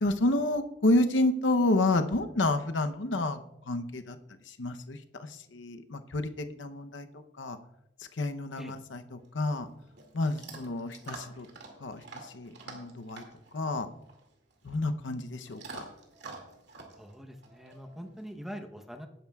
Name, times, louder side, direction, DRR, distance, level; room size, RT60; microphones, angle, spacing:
voice 1, 0.0-4.2 4.5-7.6 8.1-9.7 10.1-11.5 11.8-13.2 13.5-13.9 14.6-15.9, left 2 dB, 80° left, 8 dB, 0.8 m, -30 dB
Chewing mastication / Dog, 9.2-18.3, right 3 dB, 65° right, 2.3 m, -49 dB
voice 2, 17.0-19.1, equal, ahead, 5 dB, 0.9 m, -43 dB
18.5 x 10.5 x 2.3 m, 0.86 s
head